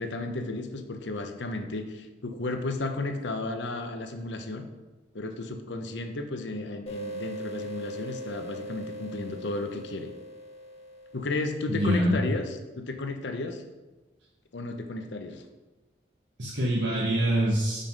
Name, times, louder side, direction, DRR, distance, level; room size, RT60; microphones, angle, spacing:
voice 1, 0.0-4.7 5.1-10.1 11.1-13.6 14.5-15.4, left 2 dB, 75° left, 6 dB, 0.7 m, -33 dB
sound 1, 6.9-12.2, equal, 35° left, 1.0 m, -40 dB
voice 2, 11.7-12.2 16.4-17.8, equal, 80° right, -5 dB, 1.1 m, -25 dB
5.5 x 5.4 x 5.3 m, 1.1 s
head